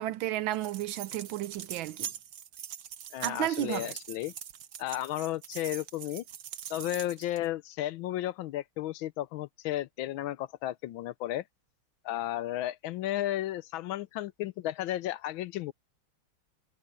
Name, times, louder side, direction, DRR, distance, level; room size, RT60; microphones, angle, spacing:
voice 1, 0.0-2.1 3.2-3.9, right 13 dB, 75° right, 1.4 m, -32 dB
sound 1, 0.5-7.5, right 9 dB, 55° right, 1.3 m, -43 dB
voice 2, 3.1-4.3 4.8-6.2 6.7-11.4 12.0-15.7, left 14 dB, 75° left, 1.4 m, -33 dB
omnidirectional pair, 2.3 m